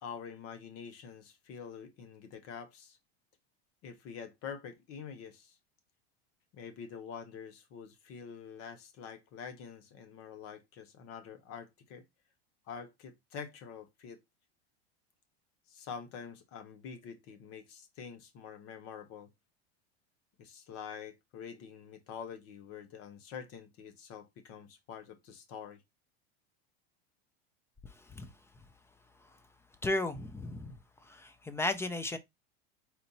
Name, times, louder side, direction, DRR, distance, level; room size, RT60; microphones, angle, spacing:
voice 1, 0.0-3.0 3.8-5.6 6.5-12.0 12.7-14.2 15.7-19.3 20.4-25.8, left 7 dB, 50° left, 1.1 m, -46 dB
voice 2, 29.8-30.7 31.5-32.2, left 2 dB, 10° left, 0.4 m, -33 dB
4.3 x 2.6 x 3.9 m
supercardioid pair, 120°, 31 cm